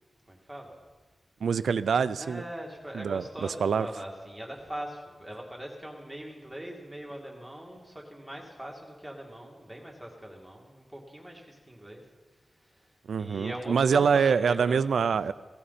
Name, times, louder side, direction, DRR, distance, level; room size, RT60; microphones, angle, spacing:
voice 1, 0.3-0.8 2.2-12.0 12.6-15.3, right 1 dB, 5° right, -1 dB, 2.5 m, -41 dB
voice 2, 1.4-2.4 2.9-3.2 3.6-3.9 13.1-15.3, right 6 dB, 90° right, 15 dB, 0.4 m, -25 dB
16.5 x 15.5 x 4.3 m, 1.3 s
wide cardioid pair, 155°, 0 cm